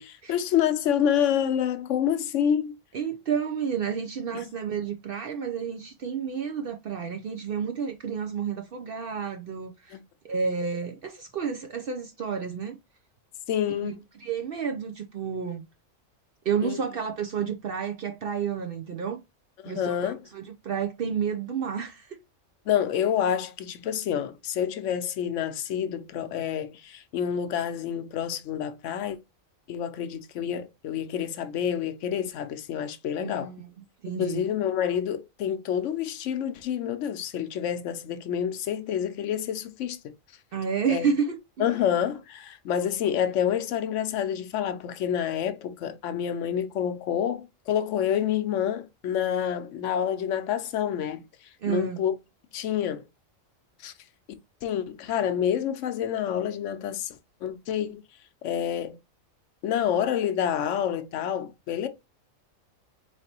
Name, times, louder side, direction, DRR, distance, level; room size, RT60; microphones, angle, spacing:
voice 1, 0.0-2.8 9.9-10.0 13.5-14.0 16.6-16.8 19.6-20.2 22.7-29.2 29.7-33.5 34.2-40.0 40.9-41.1 41.6-51.2 51.7-52.1 52.5-53.0 53.8-53.9 54.6-58.0 58.4-59.0 59.6-61.9, left 9 dB, 70° left, 0.9 m, -28 dB
voice 2, 2.9-10.0 10.2-12.8 13.8-15.6 16.5-19.2 19.7-22.2 33.2-33.7 34.0-34.4 40.5-41.7 51.6-52.0, right 7 dB, 60° right, 0.6 m, -30 dB
4.1 x 3.2 x 2.8 m
omnidirectional pair, 1.4 m